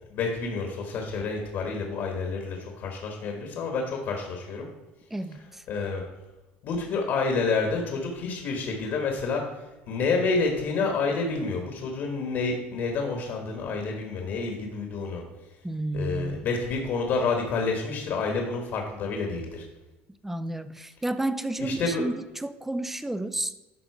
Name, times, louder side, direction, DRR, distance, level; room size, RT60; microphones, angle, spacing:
voice 1, 0.1-4.7 5.7-6.0 6.6-9.5 9.9-15.2 15.9-19.6 21.6-22.0, left 4 dB, 50° left, 3 dB, 1.3 m, -29 dB
voice 2, 5.1-5.6 15.6-16.5 20.2-23.5, right 1 dB, 5° right, 13 dB, 0.3 m, -31 dB
11.0 x 3.8 x 4.8 m, 1.1 s
cardioid pair, 140°, 5 cm